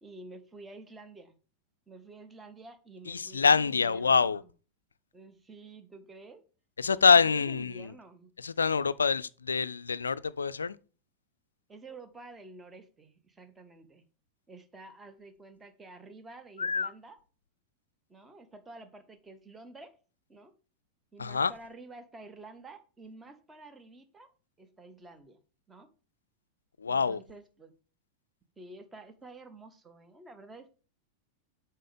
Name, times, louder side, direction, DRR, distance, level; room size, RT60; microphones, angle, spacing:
voice 1, 0.0-1.4 1.9-4.5 5.1-6.4 7.0-8.3 11.7-14.0 14.5-17.2 18.1-20.0 20.3-20.5 21.1-24.3 24.6-25.4 25.7-25.9 26.9-27.7 28.6-30.8, right 3 dB, 15° right, 1.0 m, -50 dB
voice 2, 3.1-4.4 6.8-7.9 8.4-10.8 16.6-16.9 21.2-21.5 26.8-27.2, left 5 dB, 75° left, 0.3 m, -25 dB
7.5 x 4.5 x 5.0 m
figure-of-eight pair, 90°, 0 cm